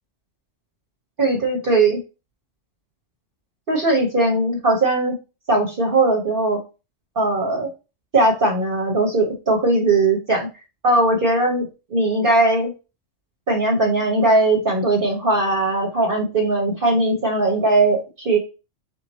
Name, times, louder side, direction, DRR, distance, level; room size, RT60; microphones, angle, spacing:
voice 1, 1.2-2.0 3.7-5.1 5.5-6.6 7.2-7.7 8.1-10.5 10.8-12.7 13.5-18.4, right 2 dB, 45° right, 0 dB, 1.1 m, -19 dB
4.1 x 3.2 x 4.0 m, 0.30 s
omnidirectional pair, 1.3 m